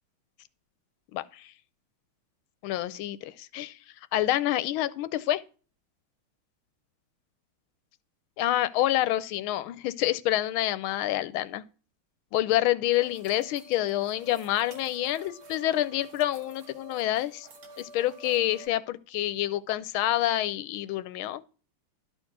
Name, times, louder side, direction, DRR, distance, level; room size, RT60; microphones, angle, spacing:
voice 1, 1.1-1.5 2.6-3.8 4.1-5.4 8.4-11.6 12.3-17.5 17.8-21.4, left 14 dB, 85° left, 1.5 m, -27 dB
sound 1, 12.9-18.7, right 2 dB, 40° right, 1.4 m, -49 dB
12.0 x 4.5 x 6.1 m
omnidirectional pair, 2.3 m